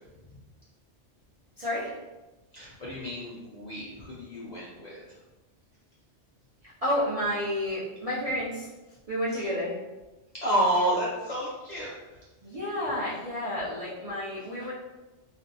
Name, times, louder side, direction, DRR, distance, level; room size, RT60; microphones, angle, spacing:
voice 1, 1.6-1.9 6.8-8.7 9.1-9.8 12.4-14.7, left 1 dB, 50° right, -9 dB, 0.4 m, -30 dB
voice 2, 2.5-5.0 9.3-9.5 10.4-11.9, right 1 dB, 55° left, -6 dB, 0.5 m, -30 dB
2.5 x 2.1 x 2.6 m, 1.1 s
omnidirectional pair, 1.2 m